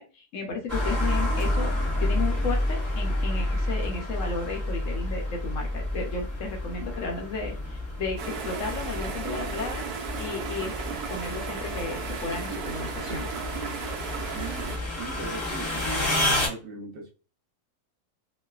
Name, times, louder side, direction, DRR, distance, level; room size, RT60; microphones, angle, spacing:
voice 1, 0.0-1.7 2.0-9.8 10.2-10.7 11.1-13.2, left 4 dB, 60° left, 1 dB, 0.9 m, -34 dB
sound 1, 0.7-16.5, left 1 dB, 15° left, 0.8 m, -30 dB
sound 2, 8.2-14.8, right 5 dB, 80° right, 1.2 m, -35 dB
voice 2, 14.3-17.1, right 4 dB, 45° right, 0 dB, 0.8 m, -39 dB
3.1 x 2.2 x 2.3 m, 0.33 s
omnidirectional pair, 1.6 m